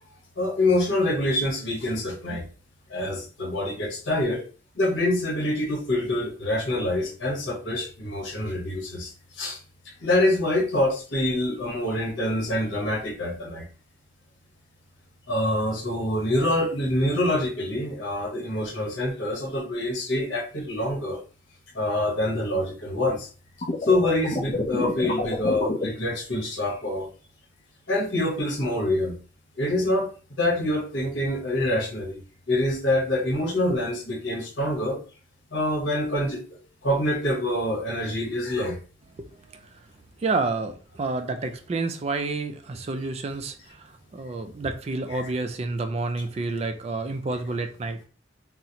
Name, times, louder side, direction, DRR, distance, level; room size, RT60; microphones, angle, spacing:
voice 1, 0.4-2.4 2.9-4.4 4.7-9.6 10.0-13.6 15.3-21.2 21.7-23.3 23.8-27.1 27.9-29.1 29.6-30.1 30.4-32.2 32.5-35.0 35.5-36.4 36.8-38.8 45.1-45.3, left 1 dB, 75° left, 1.0 m, -26 dB
sound 1, 23.6-25.9, left 2 dB, 35° left, 0.6 m, -27 dB
voice 2, 39.2-39.6 40.2-48.0, right 3 dB, 30° right, 0.3 m, -29 dB
4.0 x 2.0 x 2.8 m
head